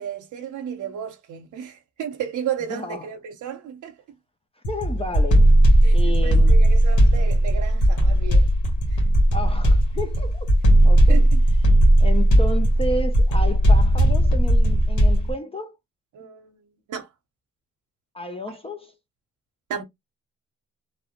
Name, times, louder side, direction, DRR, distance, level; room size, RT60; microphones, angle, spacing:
voice 1, 0.0-3.9 5.8-8.5 11.1-11.4 16.1-16.6 16.9-17.1 19.7-19.8, right 8 dB, 80° right, 0.7 m, -33 dB
voice 2, 2.7-3.1 4.7-5.5 5.9-6.6 9.3-10.5 10.8-11.3 12.0-15.8 18.1-18.9, left 1 dB, 20° left, 0.4 m, -32 dB
sound 1, 4.6-15.3, right 1 dB, 75° left, 1.2 m, -17 dB
3.0 x 2.0 x 2.8 m
cardioid pair, 80°, 30 cm